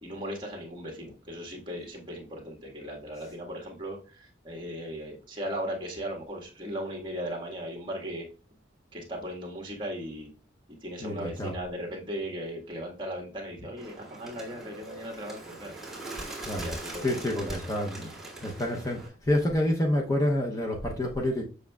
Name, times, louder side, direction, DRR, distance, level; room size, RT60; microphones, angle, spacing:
voice 1, 0.0-8.2 8.9-10.3 10.8-15.7 16.6-17.7, equal, 25° right, 0 dB, 1.5 m, -37 dB
voice 2, 11.0-11.5 16.5-16.6 17.0-18.1 18.4-21.4, left 1 dB, 20° left, 0 dB, 0.7 m, -28 dB
Bird, 13.8-19.1, right 2 dB, ahead, 2.3 m, -41 dB
7.2 x 6.4 x 2.3 m, 0.37 s
head